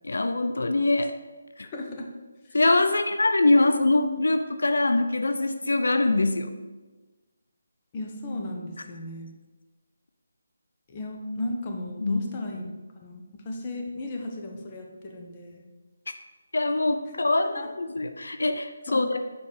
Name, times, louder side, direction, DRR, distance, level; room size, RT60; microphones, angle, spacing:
voice 1, 0.0-1.1 2.5-6.5 12.0-12.4 16.5-19.2, left 2 dB, 85° left, 8 dB, 0.6 m, -23 dB
voice 2, 1.7-2.1 7.9-9.3 10.9-12.7 13.0-15.6 17.6-17.7 18.9-19.2, left 2 dB, 25° left, 1 dB, 1.3 m, -35 dB
7.3 x 5.2 x 6.3 m, 1.2 s
figure-of-eight pair, 165°, 0 cm